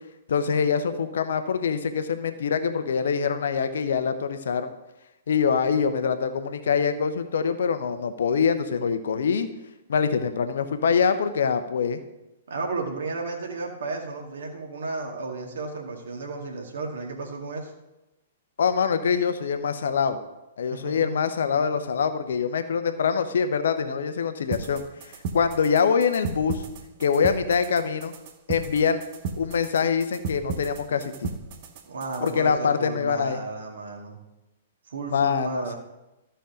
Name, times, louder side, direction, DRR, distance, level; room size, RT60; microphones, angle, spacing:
voice 1, 0.3-4.7 5.3-9.5 9.9-12.0 18.6-20.2 20.6-26.6 27.0-28.1 28.5-29.0 29.4-31.3 32.2-33.4 35.1-35.7, left 6 dB, 60° left, 10 dB, 0.9 m, -24 dB
voice 2, 12.5-17.7 20.7-21.2 31.9-34.2 34.9-35.8, right 3 dB, 60° right, 1 dB, 2.2 m, -33 dB
sound 1, 24.5-32.5, right 5 dB, 40° right, 1.1 m, -35 dB
14.0 x 5.7 x 5.1 m, 0.97 s
figure-of-eight pair, 110°, 0 cm